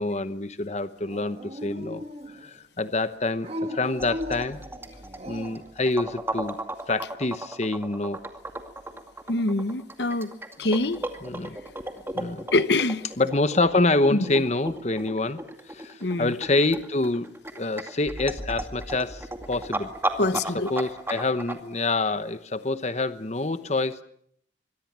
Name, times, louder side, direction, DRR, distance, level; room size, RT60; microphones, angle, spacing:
voice 1, 0.0-4.6 5.3-6.6 6.9-8.2 11.2-11.6 12.1-12.5 13.2-15.4 15.7-19.9 20.7-24.0, left 2 dB, 35° left, 0.9 m, -26 dB
Dog, 1.1-2.6 3.4-5.7, left 1 dB, 35° right, 1.8 m, -37 dB
sound 1, 4.0-21.5, right 1 dB, 10° right, 2.2 m, -35 dB
voice 2, 9.3-10.3 10.6-11.0 12.5-13.1 14.1-14.2 16.0-16.3 20.2-20.7, left 2 dB, 65° left, 1.1 m, -24 dB
26.0 x 23.0 x 7.4 m
head